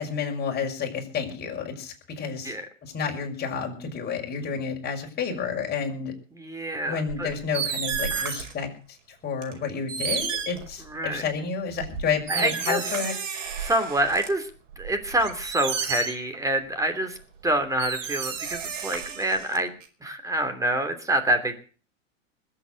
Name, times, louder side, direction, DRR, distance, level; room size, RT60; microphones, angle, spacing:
voice 1, 0.0-2.6 2.8-6.1 6.9-8.7 9.1-13.1, left 6 dB, 25° left, 1 dB, 6.1 m, -30 dB
voice 2, 6.4-7.3 8.1-8.3 10.9-11.2 12.3-12.8 13.6-14.5 14.8-17.2 17.4-19.7 20.0-21.6, right 1 dB, 10° right, 8 dB, 3.1 m, -26 dB
sound 1, 7.1-8.6 9.4-9.5 9.9-11.2 11.8-14.3 14.7-16.4 17.4-17.5 17.8-19.9, right 7 dB, 70° right, 5.4 m, -32 dB
20.5 x 8.5 x 8.1 m, 0.40 s
hypercardioid pair, 110°, 39 cm